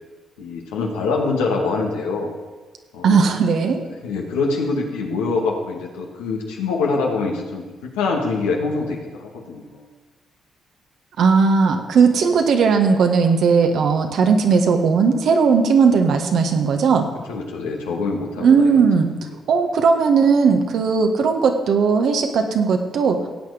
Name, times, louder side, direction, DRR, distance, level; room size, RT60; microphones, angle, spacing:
voice 1, 0.4-2.3 2.9-3.2 4.0-9.9 17.3-18.8, left 4 dB, 85° left, -1 dB, 2.1 m, -24 dB
voice 2, 3.0-3.8 11.2-17.1 18.4-19.1 19.5-23.3, right 5 dB, 70° right, 5 dB, 1.6 m, -17 dB
16.0 x 8.7 x 5.1 m, 1.3 s
hypercardioid pair, 45°, 0 cm